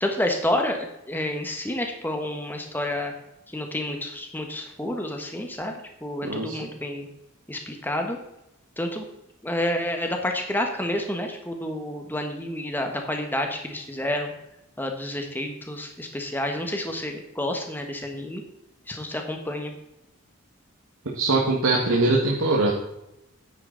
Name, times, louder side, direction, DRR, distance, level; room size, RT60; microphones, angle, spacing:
voice 1, 0.0-3.1 3.5-7.1 7.5-8.2 8.8-9.0 9.4-14.3 14.8-18.4 18.9-19.7, left 1 dB, 10° left, 3 dB, 1.3 m, -29 dB
voice 2, 6.2-6.7 21.1-22.7, right 2 dB, 85° right, -3 dB, 1.8 m, -22 dB
10.0 x 9.0 x 4.0 m, 0.87 s
head